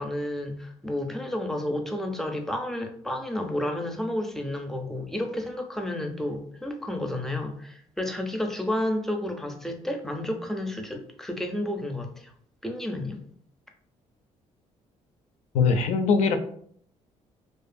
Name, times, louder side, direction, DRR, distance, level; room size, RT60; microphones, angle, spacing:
voice 1, 0.0-12.3 12.6-13.2, left 1 dB, 5° left, 3 dB, 0.4 m, -31 dB
voice 2, 15.5-16.4, left 5 dB, 70° left, 8 dB, 0.4 m, -21 dB
2.6 x 2.3 x 2.5 m, 0.62 s
cardioid pair, 105°, 12 cm